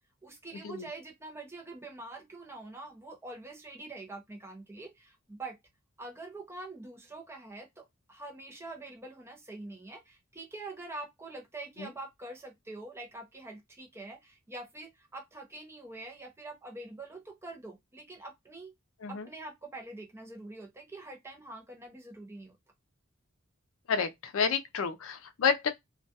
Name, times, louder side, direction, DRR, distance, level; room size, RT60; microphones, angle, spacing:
voice 1, 0.2-5.6 6.0-18.7 19.1-22.6, right 2 dB, 15° right, 0.5 m, -45 dB
voice 2, 23.9-25.7, left 6 dB, 80° left, 0.4 m, -30 dB
2.2 x 2.1 x 2.7 m
head